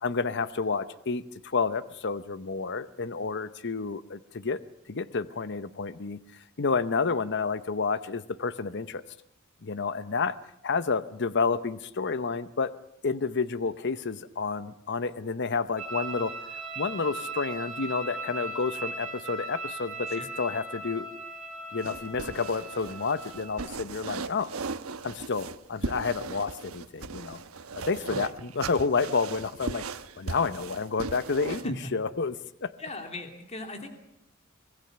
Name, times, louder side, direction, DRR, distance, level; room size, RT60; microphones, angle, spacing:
voice 1, 0.0-4.6 4.9-6.2 6.6-9.0 9.6-10.4 10.6-12.7 13.0-21.1 21.7-24.5 25.0-27.4 27.8-29.8 30.2-32.4 32.6-32.7, left 4 dB, 55° left, 14 dB, 0.8 m, -30 dB
sound 1, 15.8-23.7, right 3 dB, 35° right, 7.9 m, -38 dB
sound 2, 21.8-31.7, right 4 dB, 80° right, 1.1 m, -38 dB
voice 2, 31.5-31.9 32.8-33.9, left 2 dB, 30° left, 5 dB, 3.0 m, -39 dB
25.0 x 19.0 x 6.8 m, 0.82 s
head